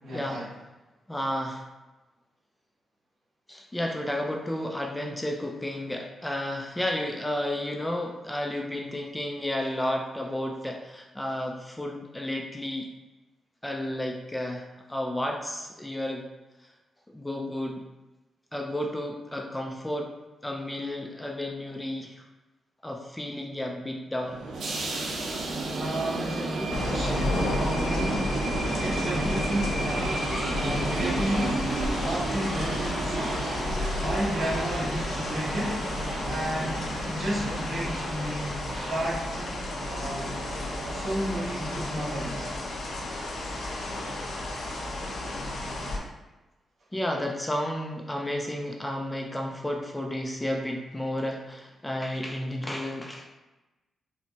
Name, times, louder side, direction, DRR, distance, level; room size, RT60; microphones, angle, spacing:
voice 1, 0.0-0.5 25.7-28.4 28.8-31.7 32.0-33.4 34.0-35.9 36.2-38.6 38.9-40.3 40.9-42.5, right 1 dB, 60° right, -5 dB, 1.1 m, -32 dB
voice 2, 1.1-1.6 3.5-12.9 13.6-16.3 17.1-17.8 18.5-20.1 20.4-22.2 22.8-24.4 30.3-30.7 32.9-33.0 34.8-35.0 46.9-53.3, left 1 dB, 10° left, 1 dB, 0.3 m, -32 dB
sound 1, 24.2-42.5, right 2 dB, 80° right, 0.6 m, -33 dB
sound 2, 26.7-46.0, left 1 dB, 80° left, 0.6 m, -32 dB
4.1 x 2.1 x 2.8 m, 1.1 s
cardioid pair, 110°, 0 cm